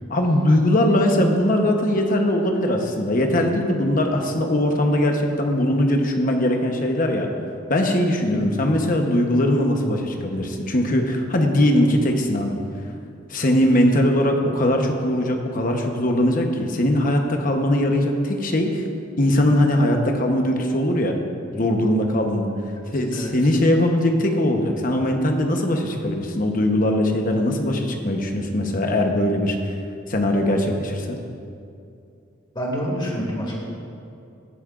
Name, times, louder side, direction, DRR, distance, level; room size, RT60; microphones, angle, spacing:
voice 1, 0.1-7.3 7.7-12.6 13.3-18.8 19.2-21.2 21.5-22.5 22.9-29.6 30.1-31.2, left 1 dB, 45° left, 3 dB, 1.0 m, -20 dB
voice 2, 8.3-8.6 22.7-22.8 23.1-23.3 32.5-33.6, equal, 25° left, -3 dB, 2.1 m, -28 dB
17.5 x 8.5 x 2.5 m, 2.5 s
head